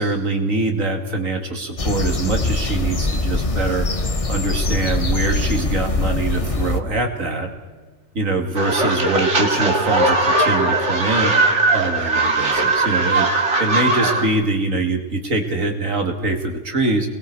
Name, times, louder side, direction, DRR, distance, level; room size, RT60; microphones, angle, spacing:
voice 1, 0.0-7.5 8.1-11.3 11.7-17.1, right 2 dB, 80° right, 4 dB, 2.8 m, -23 dB
sound 1, 1.8-6.8, left 2 dB, 30° left, 1.1 m, -22 dB
sound 2, 8.5-14.3, right 2 dB, 60° right, 2.6 m, -19 dB
29.5 x 21.0 x 4.7 m, 1.3 s
omnidirectional pair, 1.4 m